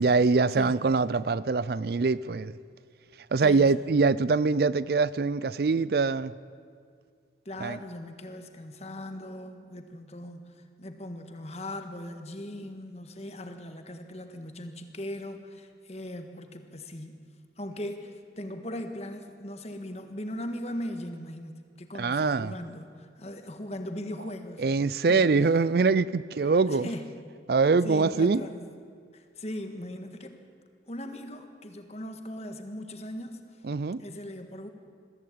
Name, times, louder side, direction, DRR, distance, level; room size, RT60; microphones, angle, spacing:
voice 1, 0.0-2.5 3.3-6.3 7.6-7.8 22.0-22.5 24.6-26.9 27.5-28.4 33.6-34.0, right 4 dB, 55° right, 0.4 m, -24 dB
voice 2, 7.4-10.5 10.8-17.2 17.6-24.6 25.1-25.3 26.7-27.2 27.8-28.7 29.1-30.4 30.9-33.4 34.0-34.7, left 1 dB, 35° left, 1.6 m, -39 dB
22.0 x 15.0 x 8.7 m
head